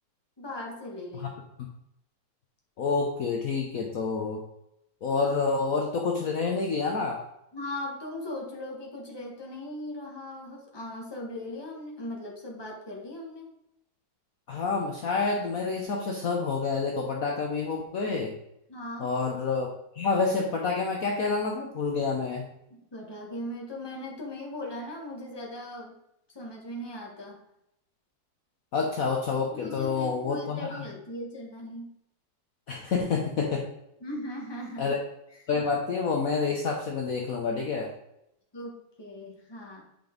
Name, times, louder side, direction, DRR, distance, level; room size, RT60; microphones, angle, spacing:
voice 1, 0.4-1.3 7.5-13.5 18.7-19.1 22.7-26.0 26.3-27.4 29.5-31.9 34.0-34.9 38.5-39.8, left 1 dB, 15° left, -1 dB, 1.4 m, -38 dB
voice 2, 2.8-4.4 5.0-7.2 14.5-18.3 19.0-22.5 28.7-30.8 32.7-33.7 34.8-35.0 35.5-37.9, left 4 dB, 55° left, 0 dB, 1.2 m, -28 dB
8.7 x 5.2 x 3.9 m, 0.80 s
omnidirectional pair, 2.0 m